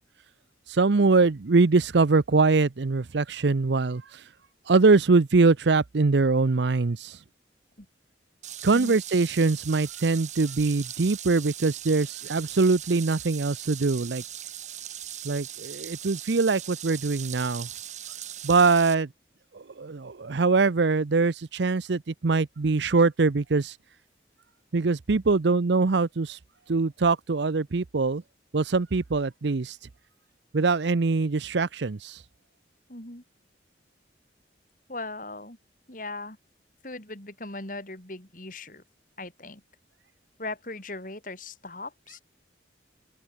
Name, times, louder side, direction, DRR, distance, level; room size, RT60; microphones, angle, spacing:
voice 1, 0.7-4.2 4.7-7.2 8.6-14.2 15.2-17.7 18.4-19.1 19.5-23.7 24.7-26.4 26.7-28.2 28.5-29.8 30.5-32.2, right 3 dB, 70° right, 0.6 m, -23 dB
sound 1, 8.4-18.9, right 11 dB, 40° right, 3.2 m, -39 dB
voice 2, 32.9-33.2 34.9-35.6 35.9-36.4 36.8-38.8 39.2-39.6 40.4-42.2, left 2 dB, 45° left, 5.2 m, -38 dB
open air
head